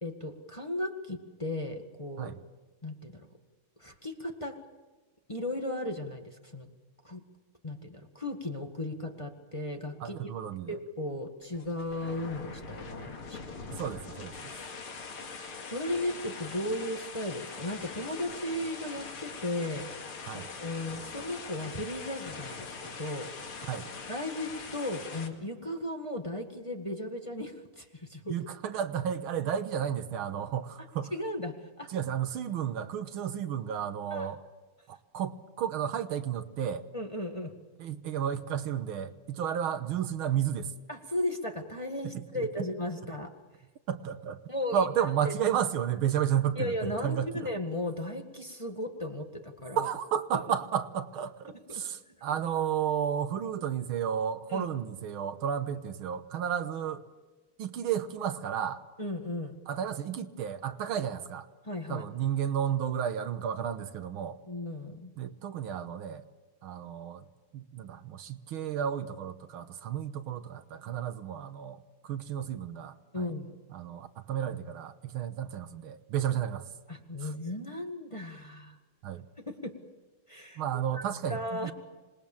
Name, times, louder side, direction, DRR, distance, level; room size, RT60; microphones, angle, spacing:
voice 1, 0.0-2.3 2.8-3.3 3.8-4.6 5.3-6.7 7.0-7.2 7.6-10.3 10.7-13.6 15.7-19.9 20.6-23.3 24.1-28.3 31.1-31.9 34.1-34.3 36.9-37.5 40.9-43.3 44.5-44.9 45.2-45.3 46.6-49.9 51.7-51.8 54.5-54.6 59.0-59.6 61.6-62.0 64.5-65.1 73.1-73.5 76.9-78.8 79.5-79.8 80.3-80.6 80.9-81.0 81.3-81.7, left 1 dB, 15° left, 4 dB, 1.6 m, -36 dB
voice 2, 10.0-10.8 13.7-14.5 20.3-20.5 23.6-23.9 28.3-31.1 31.9-34.4 34.9-36.9 37.8-40.7 42.0-42.5 43.9-44.4 44.7-47.5 49.8-57.0 57.6-58.8 59.7-61.5 61.9-64.4 65.1-66.3 66.6-67.3 67.5-73.3 73.7-76.7 77.2-77.3 79.0-79.3 80.6-81.7, right 9 dB, 80° right, 11 dB, 1.9 m, -32 dB
sound 1, 11.4-25.3, left 4 dB, 90° left, 3.1 m, -42 dB
26.5 x 20.5 x 7.3 m, 1.2 s
omnidirectional pair, 2.3 m